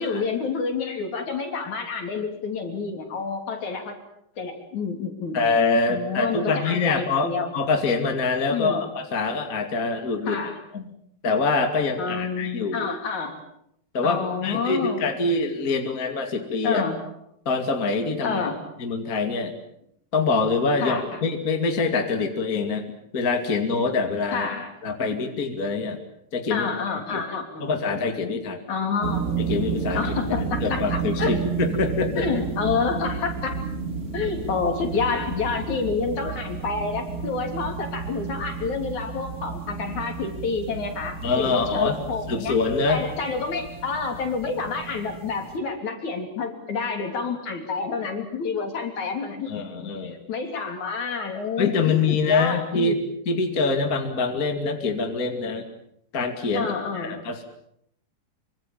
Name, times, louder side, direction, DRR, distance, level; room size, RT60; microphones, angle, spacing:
voice 1, 0.0-3.9 4.4-5.4 5.9-7.5 8.5-8.8 10.2-10.6 12.0-13.4 14.0-15.0 16.6-17.0 18.2-18.6 20.8-21.2 24.3-24.7 26.5-27.7 28.7-29.3 29.9-31.4 32.2-33.6 34.1-42.6 42.9-49.5 50.0-53.0 56.5-57.2, left 5 dB, 55° left, 5 dB, 4.5 m, -28 dB
voice 2, 5.3-10.4 10.7-10.9 11.2-12.9 13.9-16.8 17.5-18.4 18.8-19.5 20.1-22.8 23.1-24.5 24.8-26.0 26.3-26.7 27.1-27.2 27.6-28.6 29.4-30.0 30.6-32.3 34.2-34.3 41.2-43.0 49.5-50.2 51.6-53.0 53.3-55.6 56.1-57.4, left 4 dB, 25° left, 5 dB, 2.5 m, -25 dB
sound 1, 29.0-45.6, right 5 dB, 30° right, 2.5 m, -32 dB
25.5 x 25.0 x 7.3 m, 0.73 s
omnidirectional pair, 4.0 m